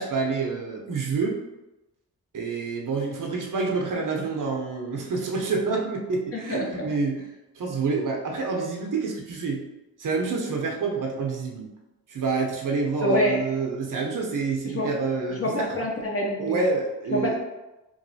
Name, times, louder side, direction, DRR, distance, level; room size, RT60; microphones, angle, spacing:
voice 1, 0.0-1.4 2.3-7.2 7.6-9.6 10.0-11.7 12.1-15.7 16.4-17.4, right 4 dB, 55° right, 0 dB, 0.7 m, -27 dB
voice 2, 13.0-13.4 14.7-14.9 15.3-16.6 17.1-17.4, left 1 dB, 35° left, -2 dB, 0.7 m, -25 dB
3.0 x 2.6 x 2.7 m, 1.0 s
cardioid pair, 55°, 38 cm